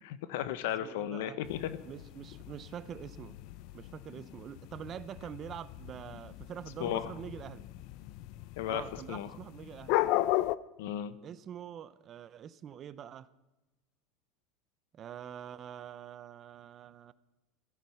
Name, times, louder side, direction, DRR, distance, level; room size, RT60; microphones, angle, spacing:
voice 1, 0.0-1.8 6.8-7.1 8.6-9.3 10.8-11.2, left 11 dB, 75° left, 14 dB, 0.9 m, -35 dB
voice 2, 0.8-1.4 1.8-3.4 3.7-7.7 8.7-10.0 11.2-13.3 14.9-17.1, right 9 dB, 30° right, 15 dB, 0.6 m, -45 dB
sound 1, 1.4-10.6, left 16 dB, 55° left, 0.5 m, -36 dB
16.5 x 12.5 x 5.7 m, 1.1 s
supercardioid pair, 155°, 0 cm